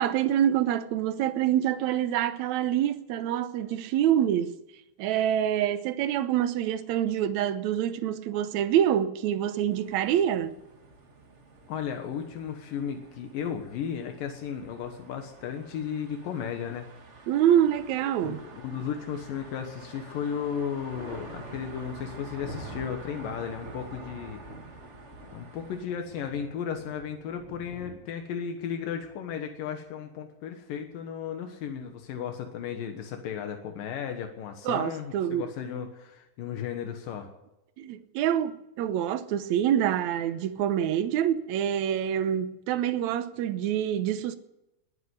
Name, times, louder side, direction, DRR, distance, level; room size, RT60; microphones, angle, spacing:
voice 1, 0.0-4.5 5.0-10.6 17.3-18.4 34.7-35.5 37.8-44.4, right 10 dB, 70° right, 2.0 m, -26 dB
sound 1, 9.7-25.8, right 3 dB, 45° right, 0.9 m, -49 dB
voice 2, 11.7-16.9 18.2-24.4 25.3-37.3, left 8 dB, 85° left, 3.0 m, -35 dB
Thunder, 19.3-19.9 20.3-29.9 31.3-32.2, right 1 dB, 20° right, 3.6 m, -46 dB
21.0 x 8.4 x 8.0 m
omnidirectional pair, 3.9 m